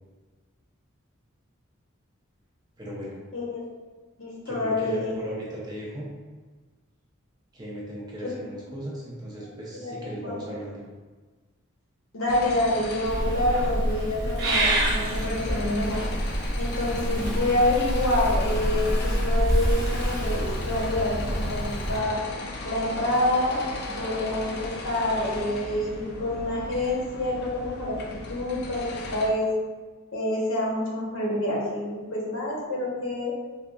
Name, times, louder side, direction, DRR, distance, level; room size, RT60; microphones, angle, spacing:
voice 1, 2.8-3.1 4.4-6.1 7.5-10.8, equal, 20° right, -6 dB, 0.7 m, -37 dB
voice 2, 3.3-3.7 4.2-5.2 9.8-10.3 12.1-16.1 16.6-22.2 22.6-29.6 30.1-33.3, left 1 dB, 70° left, -4 dB, 0.9 m, -27 dB
sound 1, 12.3-29.3, left 2 dB, 50° left, 0.4 m, -37 dB
Purr / Meow, 13.1-22.0, right 1 dB, 55° right, 1.0 m, -27 dB
4.1 x 2.5 x 2.3 m, 1.4 s
head